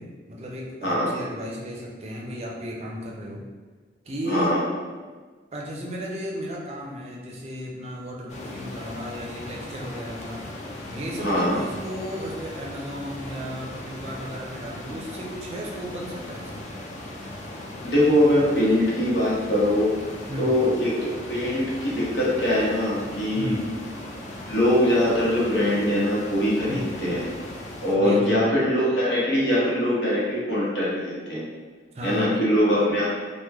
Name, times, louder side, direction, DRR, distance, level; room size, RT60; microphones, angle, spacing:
voice 1, 0.0-3.4 4.1-4.6 5.5-10.4 10.9-16.7 20.3-20.6 23.3-23.7 26.7-26.9 27.9-28.5 31.9-32.4, equal, 35° right, -2 dB, 0.4 m, -34 dB
voice 2, 4.2-4.6 11.2-11.6 17.8-20.0 20.4-23.5 24.4-27.3 27.8-31.4 32.0-33.0, left 1 dB, 80° left, -6 dB, 1.0 m, -22 dB
sound 1, 8.3-28.0, left 1 dB, 40° left, 0.4 m, -38 dB
3.0 x 2.1 x 3.4 m, 1.4 s
head